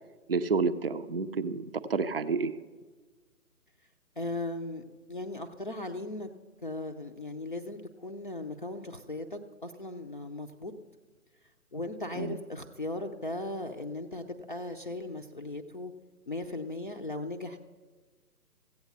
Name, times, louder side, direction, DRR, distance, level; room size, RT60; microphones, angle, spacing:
voice 1, 0.3-2.6 12.2-12.4, right 4 dB, 40° right, 10 dB, 0.5 m, -29 dB
voice 2, 4.2-4.8 5.1-6.3 6.6-10.7 11.7-15.9 16.3-17.6, left 2 dB, 35° left, 3 dB, 0.5 m, -37 dB
15.5 x 8.3 x 6.6 m, 1.4 s
figure-of-eight pair, 145°, 46 cm